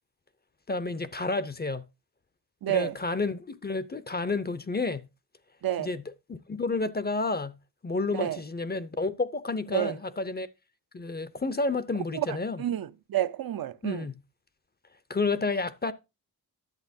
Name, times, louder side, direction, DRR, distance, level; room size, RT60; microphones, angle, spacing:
voice 1, 0.7-1.8 2.7-5.0 5.8-6.0 6.3-7.5 7.8-10.5 10.9-12.6 13.8-14.1 15.1-15.9, left 3 dB, 25° left, 0.6 m, -30 dB
voice 2, 2.6-3.0 5.6-5.9 8.1-8.4 9.7-10.0 12.1-14.1, right 12 dB, 65° right, 0.7 m, -30 dB
10.5 x 7.6 x 2.7 m
cardioid pair, 80°, 37 cm